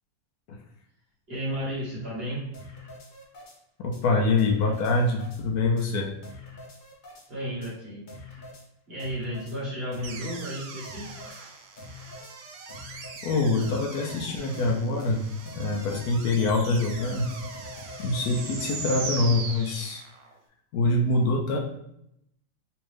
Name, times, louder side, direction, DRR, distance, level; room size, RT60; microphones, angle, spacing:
voice 1, 1.3-2.5 7.3-8.4 8.9-11.5, equal, 40° right, -7 dB, 1.6 m, -34 dB
sound 1, 2.5-3.6 3.9-4.0 4.4-5.4 5.8-5.9 6.2-7.3 7.6-7.7 8.1-8.6 9.0-9.6 9.9-10.5 10.8-11.4 11.8-12.3 12.7-13.3 13.6-13.7 14.1-14.2 14.5-14.7 15.0-15.1 15.5-15.6 15.9-16.0 16.4-16.5 16.8-19.2, left 2 dB, 45° left, 0.6 m, -44 dB
voice 2, 3.8-6.1 13.2-15.3 15.5-17.3 18.0-20.0 20.7-21.6, left 2 dB, 75° left, 1 dB, 1.1 m, -25 dB
sound 2, 10.0-20.3, right 5 dB, 80° right, 0.5 m, -40 dB
3.4 x 3.0 x 3.2 m, 0.77 s
omnidirectional pair, 1.7 m